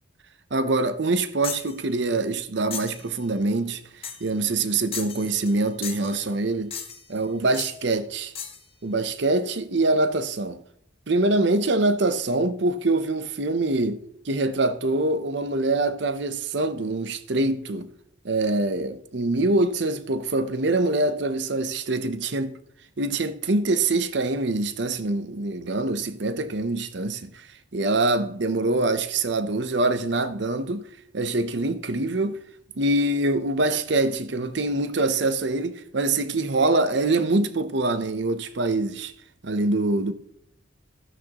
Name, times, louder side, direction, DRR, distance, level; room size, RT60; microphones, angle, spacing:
voice 1, 0.5-3.8 4.2-6.7 7.1-8.3 8.8-10.6 11.1-17.9 18.2-22.6 23.0-27.5 27.7-30.8 31.1-32.4 32.8-39.1 39.4-40.1, right 2 dB, 60° right, 0.7 m, -24 dB
sound 1, 1.4-1.7 2.7-3.0 4.0-4.3 4.9-5.6 5.8-6.2 6.7-7.1 7.5-7.8 8.4-8.6, left 7 dB, 30° left, 1.1 m, -35 dB
13.5 x 9.0 x 3.0 m
head